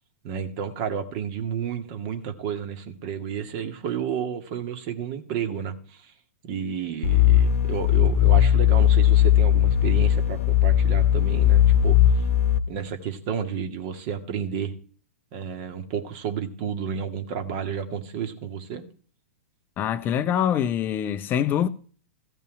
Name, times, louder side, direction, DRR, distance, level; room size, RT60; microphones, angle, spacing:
voice 1, 0.2-6.1 6.4-12.0 12.7-14.7 15.3-18.8, right 7 dB, 40° right, 1.9 m, -31 dB
sound 1, 7.0-12.6, left 11 dB, 70° left, 1.0 m, -18 dB
voice 2, 19.8-21.7, left 9 dB, 25° left, 0.6 m, -24 dB
15.0 x 5.4 x 9.0 m
figure-of-eight pair, 110°, 8 cm